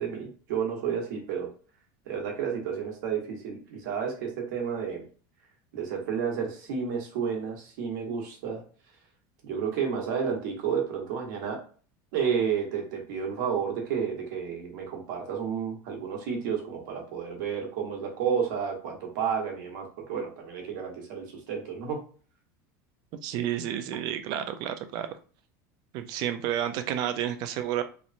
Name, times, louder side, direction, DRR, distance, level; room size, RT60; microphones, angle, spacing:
voice 1, 0.0-1.5 2.1-5.0 5.7-8.6 9.4-11.6 12.1-22.0, right 7 dB, 75° right, 0 dB, 1.0 m, -31 dB
voice 2, 23.2-25.1 25.9-27.8, right 10 dB, 45° right, 9 dB, 0.3 m, -30 dB
2.9 x 2.0 x 2.5 m, 0.40 s
supercardioid pair, 165°, 10 cm